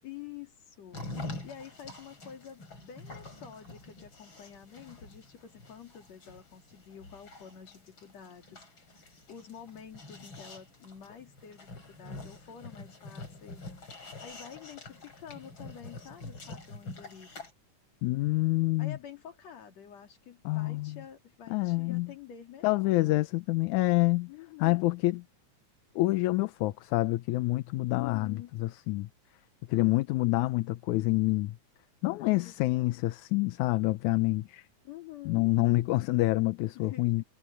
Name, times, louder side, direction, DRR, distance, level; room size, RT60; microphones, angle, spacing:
voice 1, 0.0-13.7 14.2-17.3 18.8-23.4 24.3-24.9 27.9-28.7 32.2-33.0 34.8-35.5 36.7-37.2, left 9 dB, 55° left, 3.5 m, -48 dB
sound 1, 0.9-17.5, left 2 dB, 35° left, 6.1 m, -46 dB
voice 2, 18.0-19.0 20.5-21.0 21.5-22.1 22.6-24.3 24.6-25.2 26.0-29.1 29.7-31.6 32.0-34.6 35.3-37.2, left 19 dB, 75° left, 2.0 m, -27 dB
omnidirectional pair, 3.6 m